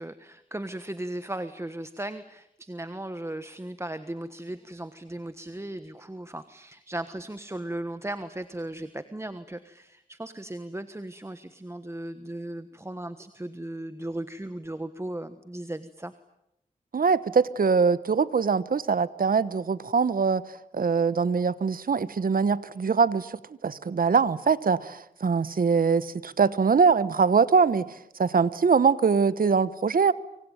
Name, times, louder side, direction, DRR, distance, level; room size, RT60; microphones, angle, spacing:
voice 1, 0.0-16.1, right 1 dB, 15° right, 12 dB, 1.3 m, -37 dB
voice 2, 16.9-20.4 20.7-27.9 28.2-30.1, right 5 dB, 70° right, 17 dB, 1.2 m, -23 dB
25.5 x 25.0 x 9.3 m, 0.81 s
wide cardioid pair, 70°, 15 cm